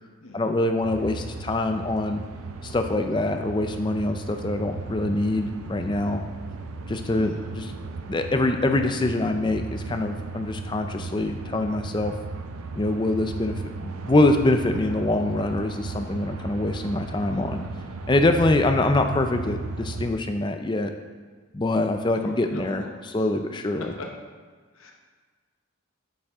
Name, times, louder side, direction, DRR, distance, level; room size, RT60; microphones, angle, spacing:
voice 1, 0.3-2.2 2.6-6.2 6.9-7.7 8.1-12.1 12.8-17.6 18.1-20.9 21.5-23.9, left 2 dB, 20° left, 6 dB, 0.4 m, -24 dB
sound 1, 0.8-20.1, right 3 dB, 85° right, 0.5 m, -36 dB
voice 2, 7.1-7.4 17.3-17.5 22.2-23.3 23.6-24.1 24.7-24.9, left 2 dB, 75° left, 1 dB, 0.9 m, -42 dB
8.2 x 5.2 x 3.6 m, 1.5 s
head